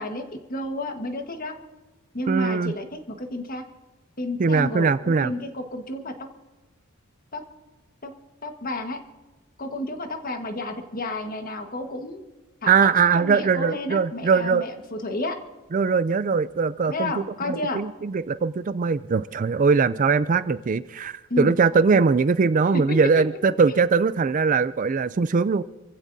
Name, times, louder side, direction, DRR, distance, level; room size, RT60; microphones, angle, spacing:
voice 1, 0.0-1.5 2.1-3.6 4.2-6.2 7.3-7.4 8.0-8.1 8.4-9.0 9.6-12.2 12.6-15.4 16.9-17.8 21.3-21.5 22.7-23.0 23.7-23.8, left 1 dB, 45° left, 5 dB, 1.5 m, -31 dB
voice 2, 2.3-2.7 4.4-5.3 12.7-14.6 15.7-25.6, right 5 dB, 40° right, 15 dB, 0.4 m, -21 dB
28.0 x 15.5 x 2.7 m, 1.2 s
head